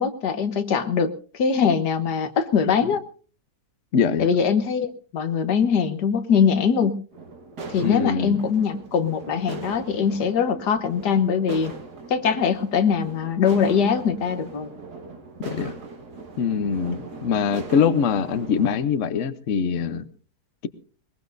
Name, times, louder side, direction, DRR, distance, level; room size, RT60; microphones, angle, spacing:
voice 1, 0.0-3.0 4.2-7.0 7.7-11.7 12.1-14.7, left 6 dB, 80° left, 9 dB, 1.7 m, -22 dB
voice 2, 3.9-4.3 7.8-8.4 15.4-15.7 16.4-20.1, left 6 dB, 55° left, 12 dB, 1.1 m, -23 dB
sound 1, 7.1-18.8, right 3 dB, 70° right, 2.4 m, -39 dB
21.5 x 20.5 x 2.6 m, 0.39 s
omnidirectional pair, 1.8 m